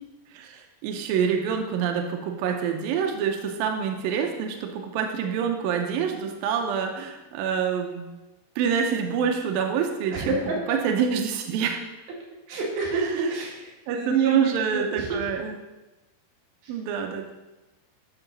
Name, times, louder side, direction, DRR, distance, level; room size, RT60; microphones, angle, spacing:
voice 1, 0.3-8.0 8.6-10.4 10.7-11.8 12.9-13.3 13.9-15.6 16.7-17.3, right 7 dB, 80° right, 3 dB, 2.1 m, -26 dB
voice 2, 10.1-10.8 12.5-15.3 16.6-16.8, right 4 dB, 60° right, -3 dB, 3.5 m, -28 dB
9.8 x 6.5 x 4.0 m, 1.1 s
omnidirectional pair, 5.1 m